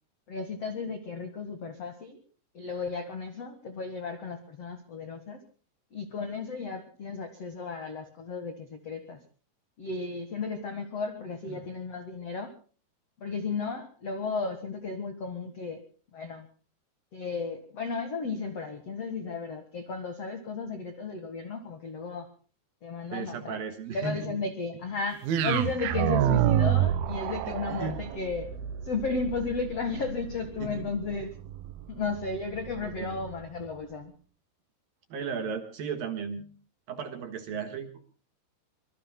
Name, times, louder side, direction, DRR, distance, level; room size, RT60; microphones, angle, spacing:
voice 1, 0.3-2.2 2.5-5.4 5.9-9.2 9.8-12.5 13.2-15.8 16.1-16.5 17.1-22.3 22.8-23.6 23.9-28.5 28.8-31.3 31.9-34.1, left 4 dB, 70° left, 8 dB, 1.4 m, -34 dB
voice 2, 23.1-24.3 27.7-28.0 30.6-30.9 33.0-33.2 35.1-36.4 36.9-37.9, right 6 dB, 60° right, 6 dB, 2.6 m, -35 dB
sound 1, 25.2-33.4, right 11 dB, 85° right, 2.1 m, -29 dB
25.0 x 23.5 x 2.2 m, 0.40 s
omnidirectional pair, 5.7 m